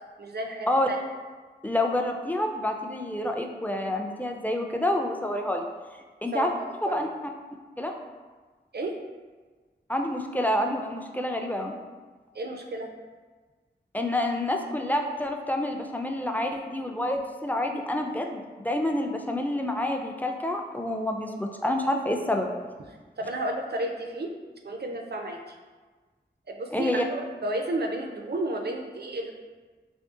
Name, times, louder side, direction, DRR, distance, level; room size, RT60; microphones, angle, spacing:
voice 1, 0.2-1.0 6.3-7.0 8.7-9.0 12.3-12.9 23.2-24.3 24.6-25.6 26.5-29.3, right 1 dB, 60° right, 3 dB, 0.4 m, -32 dB
voice 2, 1.6-5.7 6.2-6.5 6.8-7.1 7.8-7.9 9.9-11.7 13.9-22.5 26.7-27.0, left 1 dB, 10° left, 2 dB, 0.3 m, -28 dB
2.8 x 2.7 x 3.6 m, 1.4 s
wide cardioid pair, 50°, 19 cm